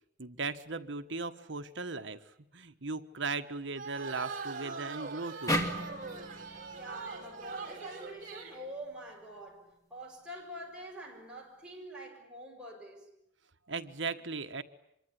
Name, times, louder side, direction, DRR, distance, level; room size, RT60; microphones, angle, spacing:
voice 1, 0.2-2.2 2.5-5.9 13.7-14.6, right 4 dB, 65° right, 1.4 m, -38 dB
sound 1, 3.7-8.6, right 4 dB, 45° right, 4.7 m, -42 dB
sound 2, 5.5-8.7, equal, 20° left, 2.8 m, -36 dB
voice 2, 6.8-13.1, right 1 dB, 5° right, 6.7 m, -46 dB
25.5 x 23.5 x 9.8 m
head